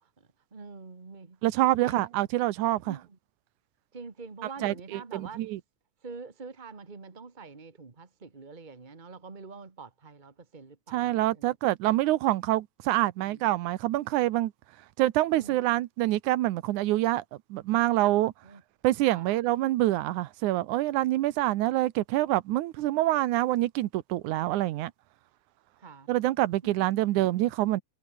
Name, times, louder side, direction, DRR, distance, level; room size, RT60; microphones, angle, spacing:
voice 1, 0.0-1.4 1.8-2.0 2.8-3.0 3.9-5.4 6.0-11.5 13.2-13.4 15.3-15.6 18.4-18.6 19.1-19.3 25.8-26.1 26.6-26.7, right 4 dB, 30° right, 0.8 m, -45 dB
voice 2, 1.4-3.0 4.6-5.6 10.9-14.5 15.0-17.2 17.5-18.3 18.8-24.9 26.1-27.8, right 16 dB, 80° right, 2.3 m, -26 dB
omnidirectional pair, 3.5 m